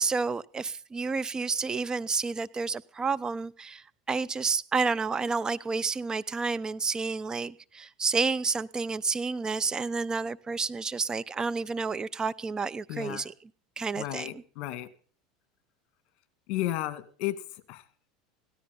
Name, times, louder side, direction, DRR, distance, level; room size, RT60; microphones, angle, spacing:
voice 1, 0.0-13.2 13.8-14.3, right 4 dB, 20° right, 14 dB, 0.7 m, -30 dB
voice 2, 12.9-13.2 14.0-14.9 16.5-17.8, left 14 dB, 55° left, 11 dB, 2.2 m, -33 dB
17.5 x 13.0 x 5.5 m, 0.43 s
hypercardioid pair, 90°, 3 cm